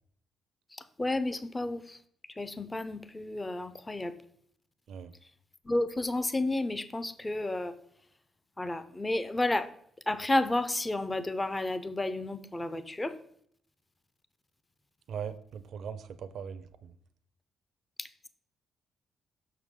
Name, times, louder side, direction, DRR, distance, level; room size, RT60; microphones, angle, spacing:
voice 1, 0.7-2.0 2.4-4.1 5.7-7.7 8.6-9.7 10.1-13.2 18.0-18.3, left 2 dB, 20° left, 12 dB, 0.5 m, -31 dB
voice 2, 15.1-16.9, right 7 dB, 65° right, 11 dB, 0.5 m, -40 dB
6.6 x 6.0 x 3.6 m, 0.65 s
cardioid pair, 90°, 0 cm